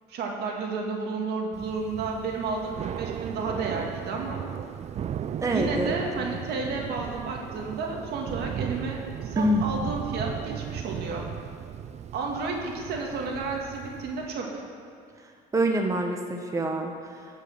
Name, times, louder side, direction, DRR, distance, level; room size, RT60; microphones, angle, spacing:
voice 1, 0.1-4.4 5.5-11.2 12.1-14.6, right 4 dB, 75° right, 0 dB, 2.0 m, -32 dB
Thunder / Rain, 1.5-14.4, right 9 dB, 40° right, 0.4 m, -36 dB
voice 2, 5.4-6.3 9.4-9.7 15.5-16.9, right 1 dB, 20° right, 3 dB, 0.9 m, -26 dB
16.0 x 5.6 x 6.4 m, 2.3 s
cardioid pair, 110°, 17 cm